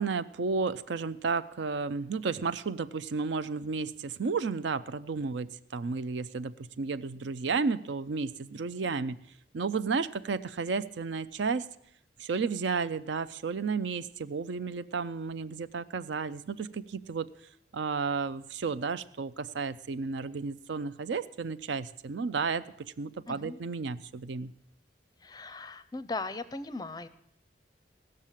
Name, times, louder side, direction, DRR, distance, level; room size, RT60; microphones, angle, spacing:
voice 1, 0.0-9.2 9.5-11.7 12.2-17.3 17.7-24.5, right 4 dB, 75° right, 14 dB, 0.5 m, -32 dB
voice 2, 23.3-23.6 25.2-27.1, left 3 dB, 20° left, 13 dB, 0.5 m, -38 dB
16.5 x 6.5 x 7.3 m, 0.74 s
head